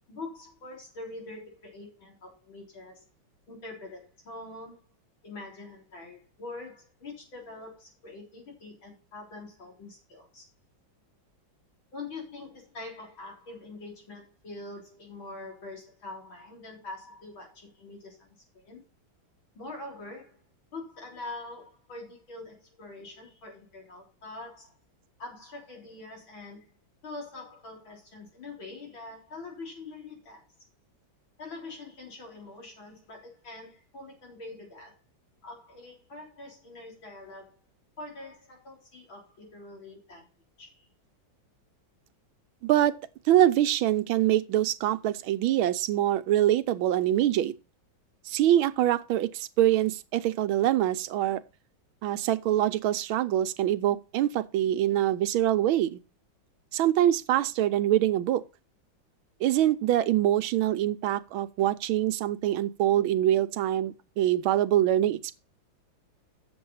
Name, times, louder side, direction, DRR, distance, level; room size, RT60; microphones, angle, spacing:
voice 1, 0.1-3.0 3.5-4.9 5.2-10.4 11.9-18.8 19.5-20.4 20.7-24.7 25.2-26.7 27.0-30.4 31.4-34.9 35.4-37.6 38.0-40.2 40.6-40.9, left 2 dB, 75° left, 4.6 m, -44 dB
voice 2, 42.6-42.9 43.3-47.5 48.3-51.4 52.0-56.0 56.7-58.4 59.4-65.4, right 12 dB, 90° right, 1.5 m, -24 dB
8.2 x 7.0 x 5.5 m
omnidirectional pair, 2.2 m